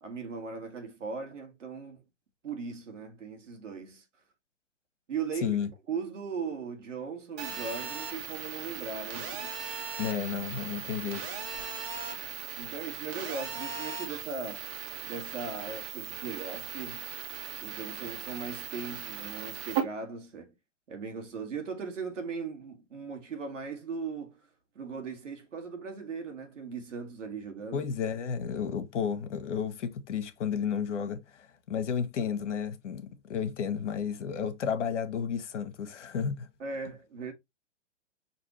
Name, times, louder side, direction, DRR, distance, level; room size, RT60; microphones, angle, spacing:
voice 1, 0.0-2.0 2.4-4.0 5.1-5.6 5.9-9.5 12.6-14.6 15.0-17.1 17.3-20.5 20.9-24.4 24.7-27.8 36.6-37.3, right 5 dB, 85° right, 1.7 m, -38 dB
voice 2, 5.3-5.7 10.0-11.2 27.7-36.5, left 7 dB, 70° left, 1.1 m, -32 dB
Telephone, 7.4-19.8, right 8 dB, 35° right, 1.4 m, -38 dB
6.1 x 2.8 x 2.9 m
hypercardioid pair, 125°, 36 cm